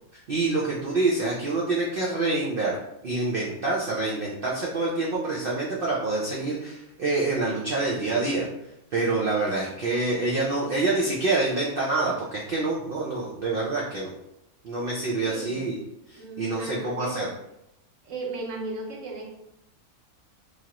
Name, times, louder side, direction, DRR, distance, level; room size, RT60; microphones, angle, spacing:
voice 1, 0.3-2.8 3.0-8.5 8.9-14.1 14.6-15.8 16.1-17.3, right 2 dB, 85° right, -4 dB, 0.4 m, -26 dB
voice 2, 15.2-15.7 16.1-17.3 18.0-19.3, right 3 dB, 65° right, 1 dB, 0.9 m, -35 dB
3.1 x 2.5 x 2.8 m, 0.83 s
omnidirectional pair, 1.6 m